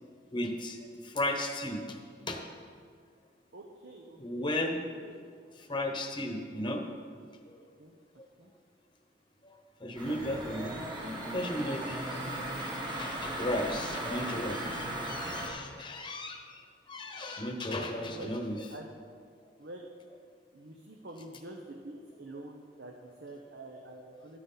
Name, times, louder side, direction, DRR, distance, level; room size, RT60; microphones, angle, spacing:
voice 1, 0.3-2.6 4.2-4.8 5.7-6.8 7.5-7.6 9.4-9.5 9.8-10.8 11.3-12.1 12.9-16.6 16.9-18.6, left 1 dB, 25° left, 3 dB, 1.0 m, -35 dB
voice 2, 3.5-4.6 5.0-5.2 7.8-7.9 8.4-8.5 18.1-18.4 18.7-18.9 19.6-19.9 20.5-24.4, right 2 dB, 70° right, 2 dB, 0.9 m, -46 dB
sound 1, 10.0-15.5, right 1 dB, 25° right, 1.5 m, -37 dB
12.5 x 9.6 x 4.0 m, 2.1 s
head